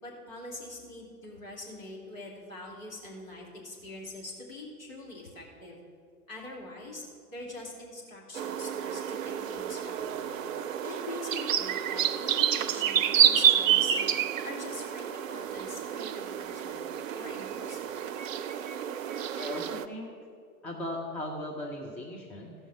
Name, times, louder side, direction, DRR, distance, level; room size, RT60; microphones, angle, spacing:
voice 1, 0.0-5.8 6.3-7.0 7.3-10.4 10.8-14.1 14.4-16.9 17.1-18.0, left 2 dB, 60° left, -3 dB, 3.1 m, -43 dB
sound 1, 8.3-19.8, right 9 dB, 60° right, 0.5 m, -29 dB
voice 2, 19.4-20.1 20.6-22.5, left 1 dB, 5° left, -2 dB, 0.4 m, -37 dB
15.0 x 5.5 x 5.8 m, 2.4 s
figure-of-eight pair, 95°, 46 cm